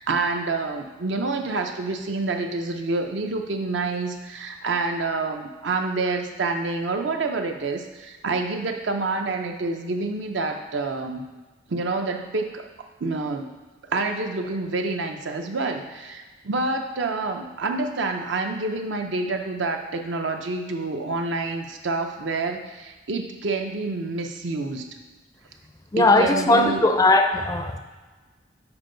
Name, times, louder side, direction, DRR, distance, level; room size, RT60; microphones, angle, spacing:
voice 1, 0.0-11.3 11.7-12.7 13.0-13.5 13.9-24.9 26.0-26.8, right 3 dB, 75° right, 5 dB, 0.6 m, -27 dB
voice 2, 25.9-27.8, left 2 dB, 20° left, 6 dB, 0.4 m, -18 dB
7.2 x 4.5 x 3.9 m, 1.2 s
head